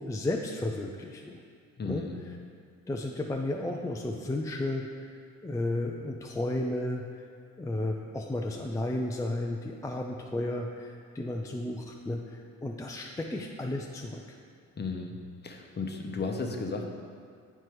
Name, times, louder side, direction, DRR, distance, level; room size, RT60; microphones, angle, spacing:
voice 1, 0.0-1.4 1.8-2.0 2.9-5.2 5.4-7.0 7.6-14.2, left 1 dB, 10° left, 1 dB, 0.4 m, -33 dB
voice 2, 1.8-2.2 14.8-15.1 15.4-16.8, left 4 dB, 35° left, 2 dB, 0.9 m, -34 dB
7.8 x 4.5 x 4.7 m, 2.2 s
cardioid pair, 90°, 30 cm